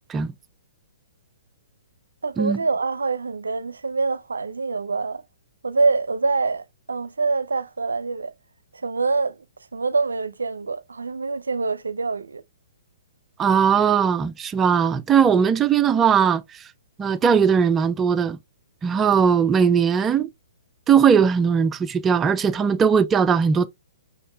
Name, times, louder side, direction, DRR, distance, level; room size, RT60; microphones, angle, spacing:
voice 1, 2.2-5.2 5.6-8.3 8.8-9.4 9.7-12.4, right 4 dB, 80° right, 0.5 m, -25 dB
voice 2, 13.4-16.6 17.0-18.4 18.8-20.3 20.9-23.7, right 7 dB, 15° right, 0.4 m, -19 dB
5.2 x 4.2 x 2.3 m
figure-of-eight pair, 125°, 0 cm